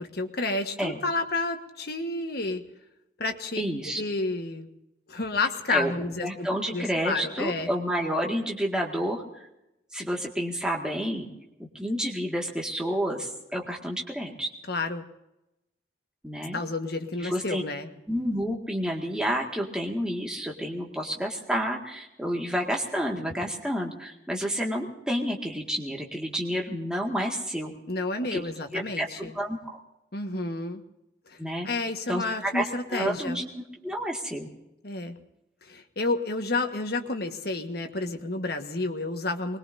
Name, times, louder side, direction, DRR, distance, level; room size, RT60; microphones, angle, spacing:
voice 1, 0.0-2.6 3.2-3.6 4.0-4.7 5.1-7.7 14.7-15.0 16.5-17.9 27.9-29.3 30.1-30.8 31.3-33.4 34.8-35.1 35.6-39.6, left 3 dB, 55° left, 5 dB, 1.5 m, -30 dB
voice 2, 3.6-4.0 5.7-5.9 6.2-9.5 9.9-11.3 11.6-14.5 16.2-16.6 17.2-17.6 18.1-27.7 28.3-28.5 28.7-29.8 31.4-31.7 32.1-34.5, equal, 5° right, -1 dB, 1.9 m, -30 dB
24.0 x 21.5 x 2.7 m, 0.90 s
head